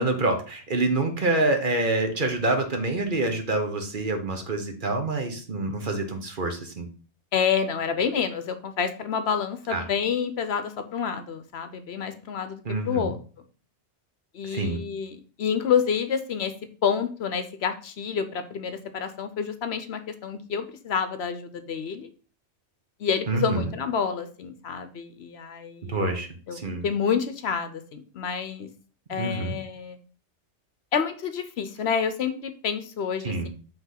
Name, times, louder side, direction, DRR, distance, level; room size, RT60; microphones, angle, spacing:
voice 1, 0.0-6.9 9.7-9.9 12.6-13.1 14.4-14.8 23.3-23.7 25.9-26.8 29.2-29.6 33.2-33.5, right 2 dB, 45° right, 5 dB, 1.1 m, -27 dB
voice 2, 7.3-13.2 14.3-16.5 16.8-22.1 23.0-26.2 26.5-28.7 29.1-30.0 30.9-33.5, left 7 dB, 65° left, 10 dB, 0.9 m, -28 dB
5.8 x 3.6 x 5.7 m, 0.40 s
omnidirectional pair, 1.2 m